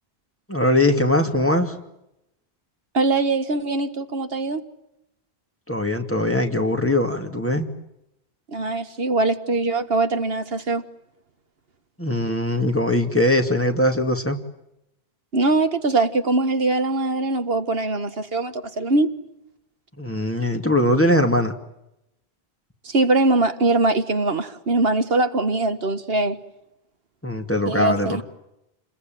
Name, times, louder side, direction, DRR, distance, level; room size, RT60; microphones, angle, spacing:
voice 1, 0.5-1.8 5.7-7.7 12.0-14.4 20.0-21.5 27.2-28.2, left 1 dB, 10° left, 4 dB, 2.4 m, -21 dB
voice 2, 2.9-4.6 8.5-10.8 15.3-19.1 22.8-26.4 27.7-28.2, right 2 dB, 70° right, 9 dB, 1.7 m, -22 dB
29.0 x 21.5 x 9.2 m, 0.86 s
omnidirectional pair, 1.1 m